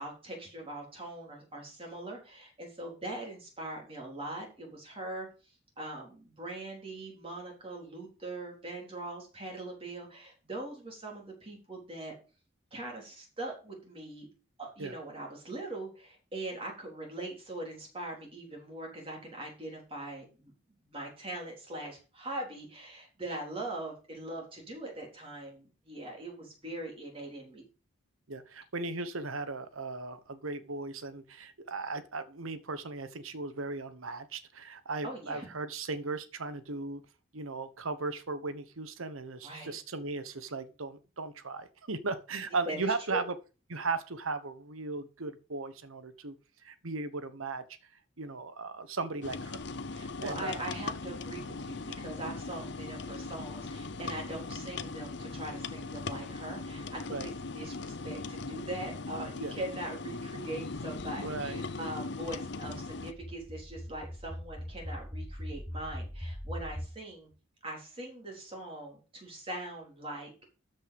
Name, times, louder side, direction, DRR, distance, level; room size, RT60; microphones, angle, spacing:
voice 1, 0.0-5.3 5.8-12.2 12.7-14.3 14.6-20.5 20.8-27.6 35.0-35.5 39.4-39.7 42.7-43.2 49.9-67.3 67.6-70.3, right 2 dB, 25° right, 3.8 m, -41 dB
voice 2, 28.3-37.0 37.3-43.3 43.7-46.3 46.6-47.6 48.2-49.6 50.0-50.6 57.1-57.3 59.4-59.5 61.2-61.7, right 3 dB, 85° right, 1.2 m, -37 dB
sound 1, 49.2-63.1, left 3 dB, 55° left, 0.7 m, -39 dB
sound 2, 62.5-66.9, equal, ahead, 0.7 m, -41 dB
13.0 x 5.6 x 5.3 m
head